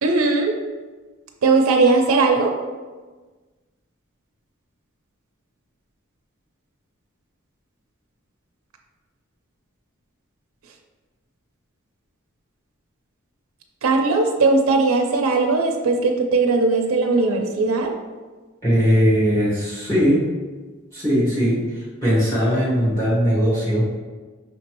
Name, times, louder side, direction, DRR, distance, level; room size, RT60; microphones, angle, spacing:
voice 1, 0.0-0.5 1.4-2.5 13.8-17.9, right 3 dB, 75° right, 2 dB, 0.5 m, -18 dB
voice 2, 18.6-20.2 20.9-21.6 22.0-23.8, equal, 15° left, -9 dB, 1.2 m, -19 dB
5.7 x 3.0 x 3.0 m, 1.3 s
head